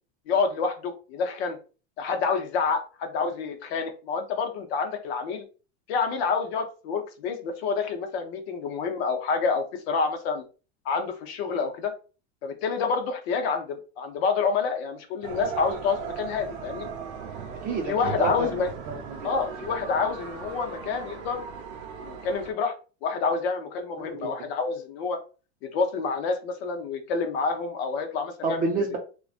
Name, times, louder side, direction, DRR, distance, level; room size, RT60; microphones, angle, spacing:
voice 1, 0.3-1.6 2.0-5.4 5.9-10.4 10.9-11.9 12.4-16.9 17.9-18.7 19.2-21.4 22.0-22.7 23.0-25.2 25.6-28.8, left 5 dB, 65° left, 5 dB, 0.7 m, -28 dB
sound 1, 15.2-22.5, right 7 dB, 85° right, 0.7 m, -38 dB
voice 2, 17.5-19.3 24.0-24.3 28.4-29.0, right 4 dB, 25° right, 3 dB, 0.4 m, -30 dB
2.4 x 2.2 x 2.4 m, 0.35 s
supercardioid pair, 145°, 34 cm